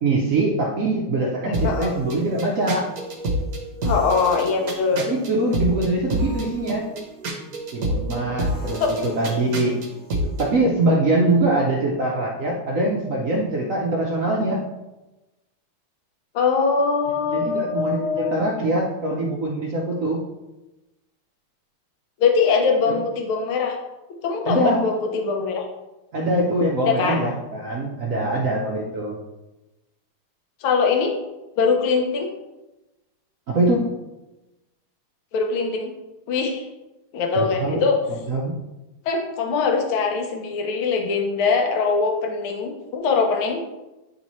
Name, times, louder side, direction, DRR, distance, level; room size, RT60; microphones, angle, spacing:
voice 1, 0.0-2.9 4.9-6.9 7.7-9.8 10.4-14.6 17.3-20.2 22.9-23.0 24.5-24.9 26.1-29.2 33.5-33.9 37.4-37.8 38.3-38.5, right 2 dB, 70° right, -2 dB, 0.7 m, -23 dB
voice 2, 1.5-1.9 3.8-5.0 8.8-8.9 16.3-18.5 22.2-23.8 24.2-25.7 26.9-27.2 30.6-31.1 31.6-32.3 35.3-35.9 36.3-36.7 37.1-38.0 39.1-43.6, left 5 dB, 75° left, 3 dB, 1.7 m, -22 dB
sound 1, 1.5-10.5, equal, 55° right, 1.2 m, -29 dB
9.6 x 4.1 x 3.0 m, 1.0 s
omnidirectional pair, 2.4 m